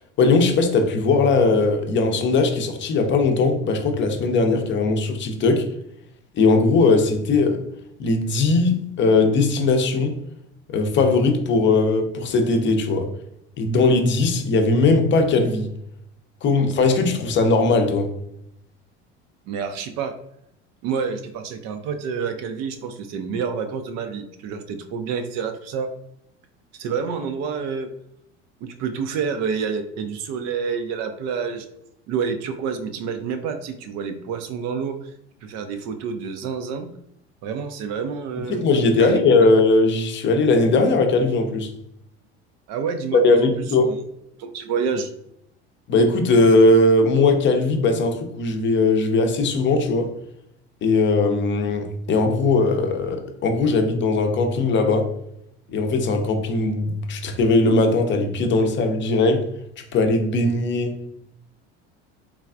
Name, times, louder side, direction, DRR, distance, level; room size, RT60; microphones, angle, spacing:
voice 1, 0.2-5.7 6.3-7.6 8.0-10.1 10.7-13.1 13.6-15.7 16.4-18.1 38.5-41.7 43.1-43.9 45.9-50.1 50.8-55.1 55.7-59.4 59.9-61.1, left 3 dB, 35° left, 5 dB, 0.6 m, -19 dB
voice 2, 19.5-20.1 20.8-25.9 26.7-27.9 28.6-31.7 32.1-35.1 35.4-36.9 37.4-38.6 38.9-39.2 42.7-43.5 43.8-44.0 44.4-45.1, right 6 dB, 50° right, 8 dB, 0.4 m, -28 dB
3.3 x 2.3 x 2.4 m, 0.77 s
hypercardioid pair, 75°, 35 cm